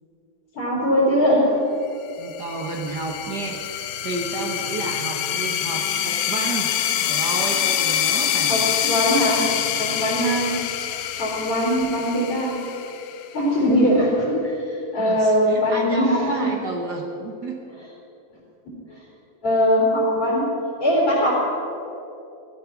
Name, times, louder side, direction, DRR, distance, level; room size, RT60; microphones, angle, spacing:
voice 1, 0.6-1.6 8.5-9.5 9.8-10.6 11.2-12.6 13.3-16.5 18.6-19.0 19.4-20.5 20.8-21.3, equal, 45° left, -5 dB, 4.6 m, -21 dB
sound 1, 2.2-13.5, left 10 dB, 85° left, 2.3 m, -25 dB
voice 2, 2.2-6.7 7.0-8.6 15.0-17.6, right 2 dB, 50° right, 0 dB, 1.2 m, -31 dB
16.5 x 13.0 x 6.0 m, 2.9 s
omnidirectional pair, 3.6 m